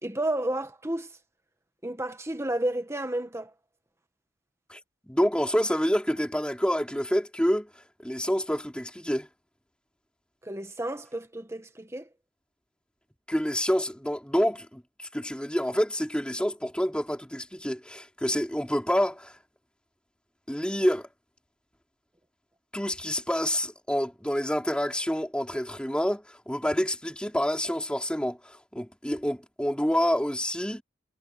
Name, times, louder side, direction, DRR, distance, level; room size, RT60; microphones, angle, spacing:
voice 1, 0.0-1.1 1.8-3.5 10.4-12.1, right 1 dB, 15° right, 1.8 m, -31 dB
voice 2, 5.1-7.7 8.0-9.3 13.3-14.8 15.1-19.3 20.5-21.1 22.7-30.8, equal, 5° left, 3.9 m, -27 dB
head